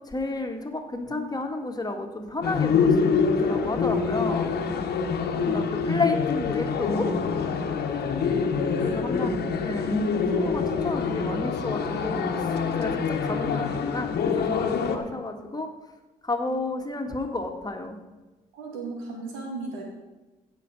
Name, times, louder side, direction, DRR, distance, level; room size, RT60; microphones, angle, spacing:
voice 1, 0.1-4.5 5.4-7.1 8.8-10.0 10.3-15.7 16.2-18.0, left 2 dB, 20° left, 4 dB, 1.9 m, -31 dB
sound 1, 2.4-15.0, left 5 dB, 65° left, 1.3 m, -25 dB
voice 2, 18.5-19.8, right 3 dB, 90° right, 0 dB, 2.3 m, -36 dB
15.5 x 5.3 x 5.3 m, 1.2 s
hypercardioid pair, 50°, 18 cm